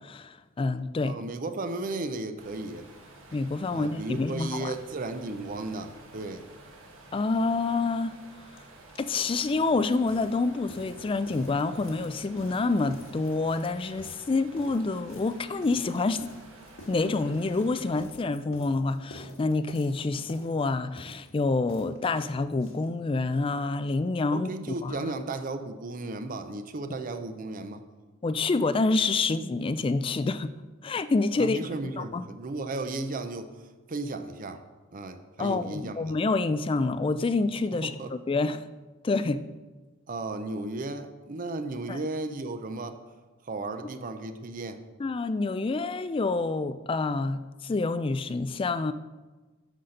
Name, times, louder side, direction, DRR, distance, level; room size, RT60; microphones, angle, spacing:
voice 1, 0.0-1.2 3.3-4.7 7.1-8.1 9.0-16.3 16.9-24.5 24.8-25.1 28.2-30.5 30.8-31.6 32.0-32.2 35.4-37.9 38.3-38.7 39.0-39.5 41.9-42.0 45.0-48.9, left 3 dB, 25° left, 0.3 m, -27 dB
voice 2, 1.0-2.9 3.7-6.5 24.3-27.8 31.4-33.5 33.9-34.6 34.9-36.0 37.8-38.1 40.1-43.0 43.4-44.8, right 2 dB, 40° right, 0.5 m, -35 dB
sound 1, 2.4-18.0, right 2 dB, 65° right, 1.5 m, -51 dB
sound 2, 8.6-8.7 8.9-23.3 23.6-23.7 23.9-24.0 24.3-24.4, left 1 dB, 70° left, 1.4 m, -50 dB
9.8 x 4.0 x 6.4 m
head